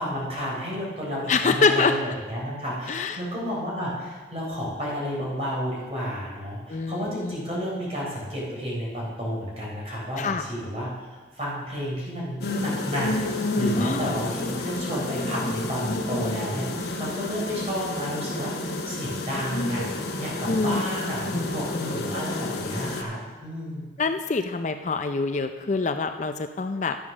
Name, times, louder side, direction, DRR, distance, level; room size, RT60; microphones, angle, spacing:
voice 1, 0.0-10.9 11.3-13.1 13.6-19.9 20.2-23.9, equal, 35° right, -5 dB, 3.8 m, -31 dB
voice 2, 1.3-1.9 2.9-3.2 6.7-7.4 10.2-10.4 13.8-14.2 20.5-20.8 21.3-21.9 24.0-27.0, left 4 dB, 40° left, 8 dB, 0.4 m, -25 dB
sound 1, 12.4-23.0, left 2 dB, 55° left, 1.1 m, -30 dB
11.5 x 7.4 x 6.0 m, 1.4 s
head